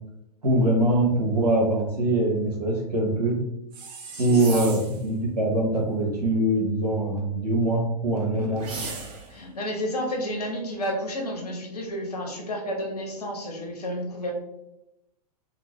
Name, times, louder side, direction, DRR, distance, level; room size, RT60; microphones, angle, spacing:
voice 1, 0.4-3.4 4.2-8.9, right 1 dB, 75° right, -2 dB, 1.1 m, -23 dB
sound 1, 3.7-5.1 8.6-9.4, right 4 dB, 25° right, 0.6 m, -37 dB
voice 2, 4.1-4.7 9.3-14.3, equal, 70° left, 1 dB, 1.0 m, -31 dB
2.9 x 2.5 x 3.1 m, 0.85 s
figure-of-eight pair, 100°, 21 cm